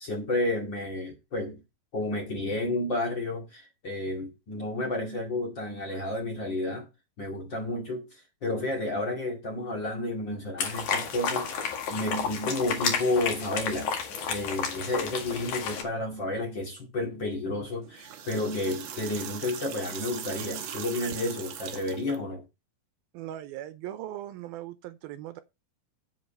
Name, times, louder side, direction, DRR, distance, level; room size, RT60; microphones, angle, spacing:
voice 1, 0.0-1.6 1.9-6.9 7.2-13.9 14.3-22.5, left 2 dB, 35° left, 2.4 m, -31 dB
sound 1, 10.6-15.8, left 6 dB, 55° left, 3.1 m, -31 dB
sound 2, 17.8-22.2, right 8 dB, 65° right, 1.7 m, -39 dB
voice 2, 23.1-25.4, right 13 dB, 80° right, 2.5 m, -39 dB
8.0 x 7.9 x 5.4 m
omnidirectional pair, 4.5 m